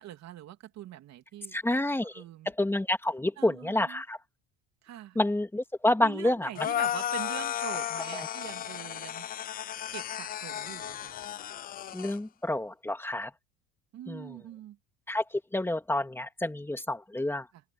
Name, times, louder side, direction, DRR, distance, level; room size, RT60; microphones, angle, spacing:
voice 1, 0.0-1.6 2.1-2.5 3.4-4.0 4.8-5.2 6.0-9.3 9.9-11.2 13.9-14.8 17.5-17.6, right 12 dB, 55° right, 3.0 m, -44 dB
voice 2, 1.5-4.2 5.2-6.5 8.1-8.3 11.9-13.3 14.1-14.4 15.1-17.5, left 1 dB, 5° left, 2.6 m, -29 dB
sound 1, 6.6-12.2, left 11 dB, 30° left, 0.4 m, -34 dB
open air
cardioid pair, 115°, 32 cm